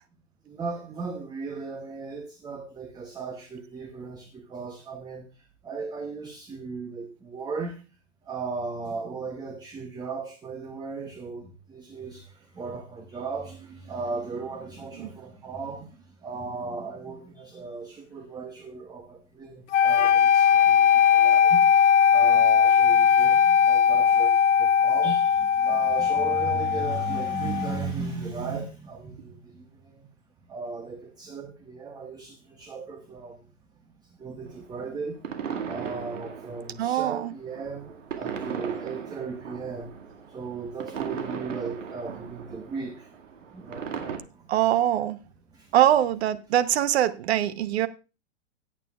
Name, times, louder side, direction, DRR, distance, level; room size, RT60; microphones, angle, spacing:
voice 1, 0.4-7.8 8.2-21.6 22.1-30.1 30.5-33.4 34.2-35.2 35.6-39.9 40.3-43.1 43.5-44.5 45.5-45.7, right 4 dB, 10° right, 0.8 m, -36 dB
sound 1, 19.7-27.8, left 7 dB, 70° left, 0.8 m, -20 dB
sound 2, 34.5-44.2, right 7 dB, 80° right, 2.1 m, -37 dB
voice 2, 36.8-37.3 44.5-45.2 45.7-47.9, right 12 dB, 55° right, 1.0 m, -23 dB
16.5 x 8.6 x 2.4 m
hypercardioid pair, 135°, 37 cm